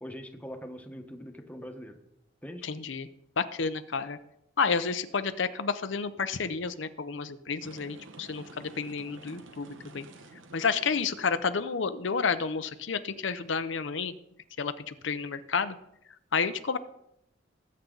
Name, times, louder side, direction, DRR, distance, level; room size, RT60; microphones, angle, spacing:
voice 1, 0.0-2.0 2.4-2.6, equal, 10° left, 4 dB, 1.3 m, -42 dB
voice 2, 2.6-3.1 3.4-4.2 4.6-10.1 10.5-14.1 14.6-15.7 16.3-16.8, left 5 dB, 70° left, 10 dB, 0.7 m, -30 dB
sound 1, 7.6-11.6, right 2 dB, 90° right, 1.2 m, -51 dB
19.5 x 8.6 x 4.0 m, 0.78 s
head